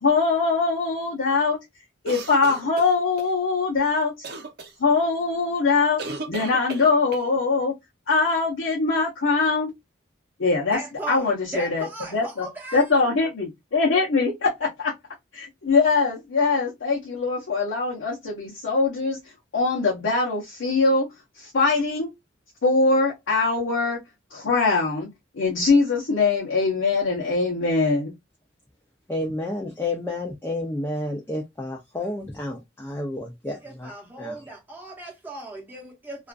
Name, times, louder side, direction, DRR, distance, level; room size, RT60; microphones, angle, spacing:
voice 1, 0.0-1.6 2.0-4.1 4.8-6.0 6.3-7.7 8.1-9.7 10.4-10.8 11.1-12.5 12.7-14.9 15.3-19.2 19.5-21.1 21.4-22.1 22.6-24.0 24.3-25.1 25.3-28.1, left 4 dB, 85° left, 0.7 m, -22 dB
sound 1, 2.0-3.3 4.2-4.7 6.0-7.3, right 3 dB, 55° right, 0.6 m, -35 dB
voice 2, 10.7-12.9 33.6-36.3, right 2 dB, 10° right, 0.7 m, -37 dB
voice 3, 29.1-33.9 34.2-34.4, left 2 dB, 10° left, 0.3 m, -30 dB
2.4 x 2.4 x 2.3 m
head